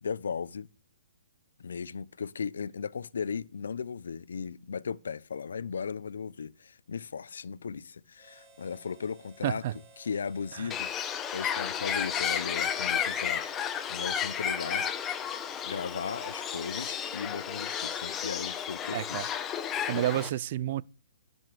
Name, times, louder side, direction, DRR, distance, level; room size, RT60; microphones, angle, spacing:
voice 1, 0.0-0.7 1.6-9.6 10.0-14.9 15.6-19.3 19.9-20.3, left 6 dB, 75° left, 0.7 m, -37 dB
Harmonica, 8.2-17.3, right 3 dB, 25° right, 2.8 m, -56 dB
voice 2, 9.4-9.8 10.6-10.7 18.9-19.3 19.9-20.8, right 13 dB, 45° right, 0.5 m, -30 dB
Bird, 10.7-20.3, left 8 dB, 15° left, 1.0 m, -32 dB
11.0 x 5.3 x 6.1 m
hypercardioid pair, 150°, 0 cm